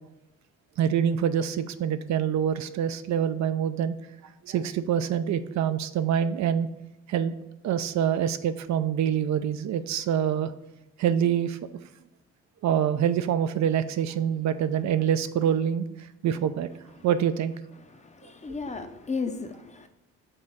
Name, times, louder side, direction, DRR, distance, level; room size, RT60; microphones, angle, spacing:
voice 1, 0.8-4.0 4.4-6.7 7.1-7.3 7.6-10.5 11.0-11.6 12.6-15.9 16.2-16.7 17.0-17.5, right 9 dB, 65° right, 11 dB, 0.5 m, -25 dB
voice 2, 17.9-19.9, left 4 dB, 25° left, 7 dB, 0.6 m, -34 dB
5.4 x 3.5 x 5.5 m, 0.95 s
cardioid pair, 90°, 30 cm